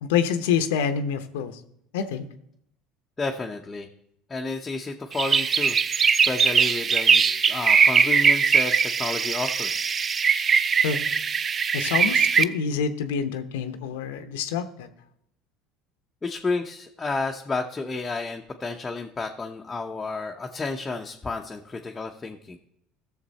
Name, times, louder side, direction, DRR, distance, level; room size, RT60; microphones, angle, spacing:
voice 1, 0.0-1.6 1.9-2.3 10.8-11.0 11.7-14.9, left 7 dB, 90° left, 10 dB, 0.9 m, -26 dB
voice 2, 3.2-3.9 4.3-5.8 6.1-9.9 16.2-22.6, left 3 dB, 20° left, 2 dB, 0.9 m, -31 dB
sound 1, 5.1-12.4, right 6 dB, 35° right, 0.5 m, -21 dB
14.0 x 6.7 x 4.2 m, 0.76 s
supercardioid pair, 95°, 0 cm